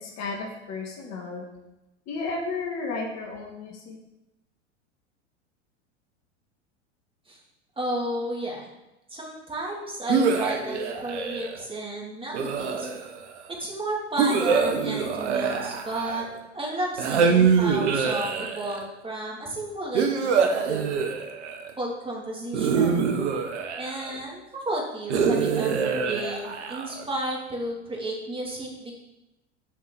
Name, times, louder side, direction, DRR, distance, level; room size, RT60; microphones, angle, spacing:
voice 1, 0.0-1.4 2.1-4.0, left 3 dB, 45° left, 0 dB, 2.3 m, -33 dB
voice 2, 7.8-8.7 9.1-12.9 13.5-16.3 16.5-21.0 21.8-23.1 23.8-28.9, right 1 dB, 15° right, -2 dB, 3.0 m, -32 dB
sound 1, 10.1-11.6 12.3-13.3 14.2-16.4 17.0-18.8 19.9-21.7 22.5-24.2 25.1-27.1, right 6 dB, 70° right, 1.4 m, -25 dB
7.4 x 5.7 x 7.4 m, 0.95 s
hypercardioid pair, 90°, 35 cm